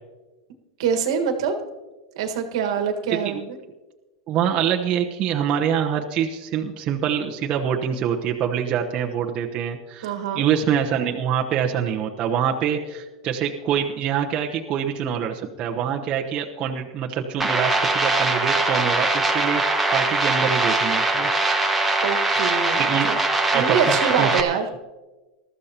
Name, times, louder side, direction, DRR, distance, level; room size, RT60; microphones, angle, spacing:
voice 1, 0.8-1.5 2.1-3.6 10.0-10.4 22.0-22.8 23.1-23.2 23.5-24.7, right 7 dB, 75° right, 5 dB, 1.6 m, -24 dB
voice 2, 4.3-21.3 22.7-23.1 23.5-24.3, right 8 dB, 40° right, 1 dB, 1.0 m, -25 dB
sound 1, 17.4-24.4, right 2 dB, 5° right, 1.4 m, -22 dB
19.5 x 13.5 x 2.9 m, 1.2 s
supercardioid pair, 130°, 3 cm